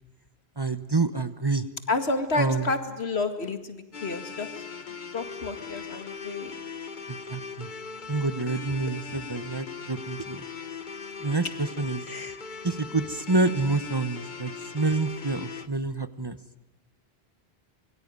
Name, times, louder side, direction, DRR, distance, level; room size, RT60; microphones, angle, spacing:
voice 1, 0.6-1.6 2.4-2.7 7.1-7.7 8.1-10.4 11.2-12.0 12.6-16.4, right 3 dB, 25° right, 13 dB, 1.0 m, -28 dB
voice 2, 1.9-4.6 5.1-6.5 12.1-12.4, left 3 dB, 85° left, 9 dB, 2.4 m, -30 dB
sound 1, 3.9-15.7, left 5 dB, 50° left, 1.3 m, -39 dB
25.0 x 23.0 x 9.5 m, 0.89 s
omnidirectional pair, 1.1 m